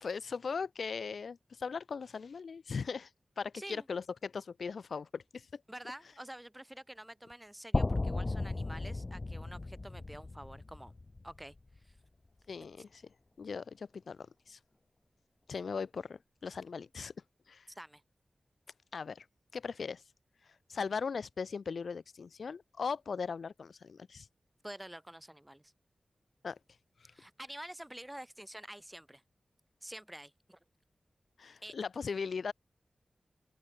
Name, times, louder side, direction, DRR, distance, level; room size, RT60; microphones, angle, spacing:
voice 1, 0.0-3.1 3.4-5.6 12.5-13.0 13.4-14.6 15.5-17.1 17.5-17.7 18.9-19.3 19.5-20.0 20.5-24.3 26.4-26.6 27.0-27.1 31.4-32.5, left 5 dB, 85° left, 1.4 m, -39 dB
voice 2, 5.7-10.9 11.2-11.6 11.8-11.9 17.7-18.0 24.6-25.7 27.1-29.2 29.8-30.6 31.6-31.7, right 1 dB, 10° right, 1.8 m, -48 dB
sound 1, 7.7-11.8, left 2 dB, 35° left, 1.9 m, -35 dB
open air
wide cardioid pair, 105°, 0 cm